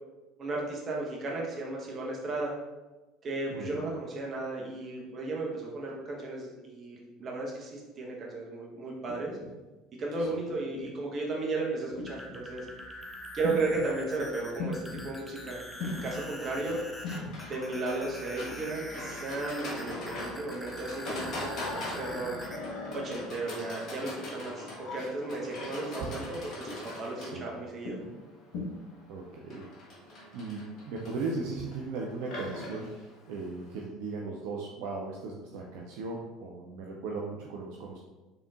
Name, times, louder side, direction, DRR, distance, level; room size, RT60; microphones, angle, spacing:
voice 1, 0.4-2.5 3.2-9.4 10.0-12.7 13.3-16.8 17.5-22.4 22.9-28.0, right 2 dB, 40° right, -2 dB, 1.0 m, -35 dB
voice 2, 3.5-3.9 26.0-26.1 27.0-27.5 29.1-29.7 30.0-32.9 33.3-38.0, right 3 dB, 65° right, -1 dB, 0.4 m, -37 dB
sound 1, 9.1-9.5 10.5-10.9 12.0-12.4 13.4-13.9 14.6-15.0 15.8-16.1 17.0-17.4 18.5-18.8 19.8-20.1 21.0-21.4 22.1-22.4 23.4-23.7 24.6-24.9 25.9-26.2 26.6-27.0 27.8-28.1 28.5-28.6, left 3 dB, 65° left, 1.0 m, -39 dB
sound 2, 11.9-22.6, equal, 5° left, 0.5 m, -44 dB
Livestock farm animals working animals, 15.8-33.8, left 2 dB, 50° left, 1.3 m, -42 dB
3.9 x 3.5 x 2.4 m, 1.1 s
hypercardioid pair, 70°, 0 cm